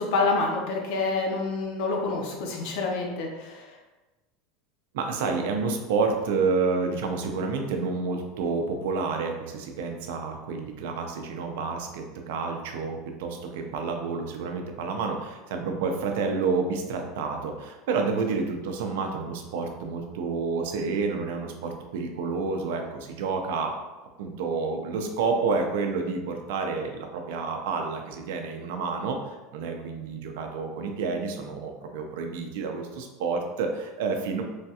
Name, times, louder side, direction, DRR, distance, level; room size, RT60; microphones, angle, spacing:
voice 1, 0.0-3.8, left 3 dB, 55° left, 1 dB, 0.6 m, -27 dB
voice 2, 4.9-23.8 24.2-29.2 29.5-34.4, right 4 dB, 75° right, 4 dB, 0.4 m, -29 dB
3.1 x 2.3 x 2.7 m, 1.1 s
supercardioid pair, 175°, 0 cm